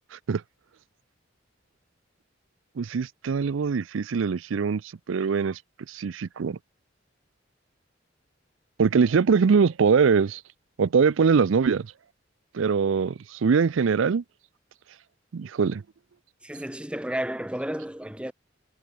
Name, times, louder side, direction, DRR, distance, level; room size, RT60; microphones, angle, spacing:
voice 1, 2.8-4.8 5.1-5.6 5.9-6.6 8.8-10.4 10.8-11.9 12.5-14.2 15.3-15.8, right 5 dB, 85° right, 0.5 m, -22 dB
voice 2, 16.4-18.3, right 1 dB, 5° right, 1.1 m, -32 dB
head